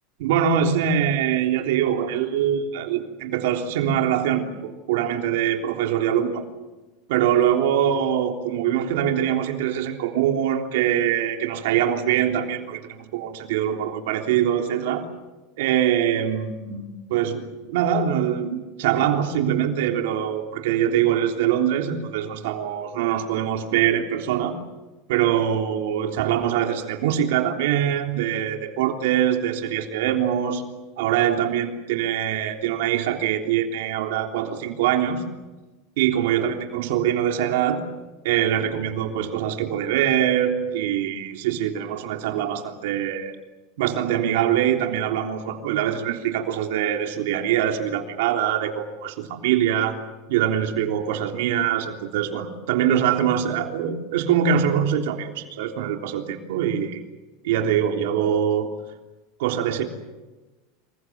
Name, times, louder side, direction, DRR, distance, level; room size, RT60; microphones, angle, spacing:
voice 1, 0.2-6.4 7.1-15.0 15.6-16.8 17.1-24.6 25.1-30.6 31.0-35.2 36.0-37.8 38.2-43.3 43.8-50.0 50.3-57.0 57.4-58.7 59.4-59.8, right 9 dB, 70° right, 4 dB, 3.5 m, -23 dB
27.0 x 23.5 x 7.7 m, 1.1 s
supercardioid pair, 165°, 0 cm